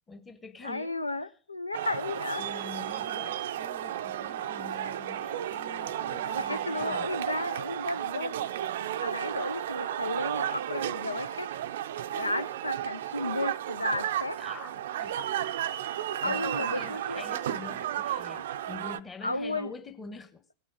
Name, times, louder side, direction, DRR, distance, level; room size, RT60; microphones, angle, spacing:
voice 1, 0.1-1.1 2.4-7.1 14.4-15.2 16.2-20.4, left 4 dB, 15° left, 1.3 m, -45 dB
voice 2, 0.6-2.4 6.3-11.5 12.1-14.4 16.2-17.2 18.3-18.5 19.2-19.7, left 2 dB, 85° left, 0.5 m, -33 dB
sound 1, 1.7-19.0, right 11 dB, 60° right, 0.5 m, -33 dB
18.0 x 6.3 x 6.1 m
figure-of-eight pair, 90°, 0 cm